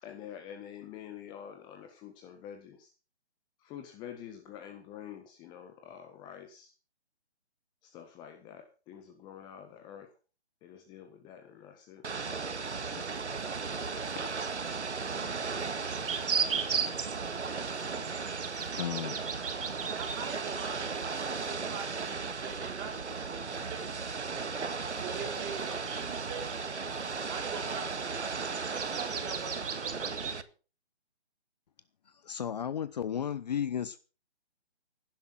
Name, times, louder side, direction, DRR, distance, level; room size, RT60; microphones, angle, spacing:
voice 1, 0.0-2.9 3.6-6.7 7.8-10.1 10.6-12.0 13.7-13.9 14.2-14.5, left 9 dB, 15° left, 1.5 m, -47 dB
Ocean / Boat Water vehicle, 12.0-30.4, right 4 dB, 90° right, 1.9 m, -36 dB
sound 1, 14.4-14.5 15.5-21.7 22.0-22.1 22.5-22.6 24.0-24.1 24.7-27.1 27.5-30.4, right 6 dB, 55° right, 3.0 m, -37 dB
voice 2, 18.5-19.2 32.2-34.0, left 8 dB, 40° left, 0.9 m, -34 dB
voice 3, 20.0-24.0 25.0-26.5 27.3-30.4, right 6 dB, 20° right, 4.0 m, -44 dB
16.5 x 10.5 x 5.9 m
hypercardioid pair, 155°, 33 cm